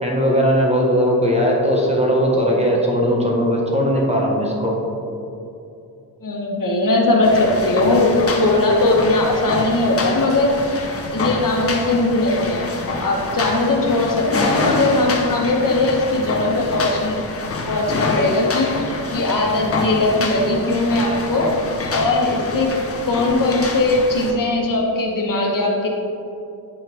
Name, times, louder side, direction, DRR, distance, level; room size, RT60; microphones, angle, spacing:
voice 1, 0.0-4.7, equal, 15° right, -2 dB, 1.5 m, -18 dB
voice 2, 6.2-8.1 8.4-10.6 11.1-12.7 13.0-17.2 17.7-21.5 21.9-22.7 23.1-25.9, left 2 dB, 55° left, -1 dB, 1.4 m, -19 dB
sound 1, 7.2-24.3, left 3 dB, 35° left, 0.9 m, -26 dB
8.6 x 5.5 x 3.6 m, 2.7 s
cardioid pair, 85°, 39 cm